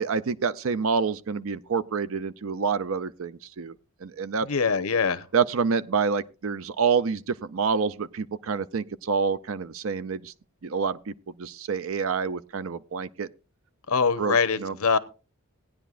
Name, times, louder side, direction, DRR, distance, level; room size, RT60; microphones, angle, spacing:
voice 1, 0.0-3.7 4.0-4.5 5.3-10.3 10.6-11.1 11.4-13.3 14.2-14.8, right 5 dB, 65° right, 0.5 m, -27 dB
voice 2, 4.5-5.2 13.9-15.0, left 5 dB, 80° left, 0.9 m, -23 dB
18.0 x 10.0 x 2.5 m
head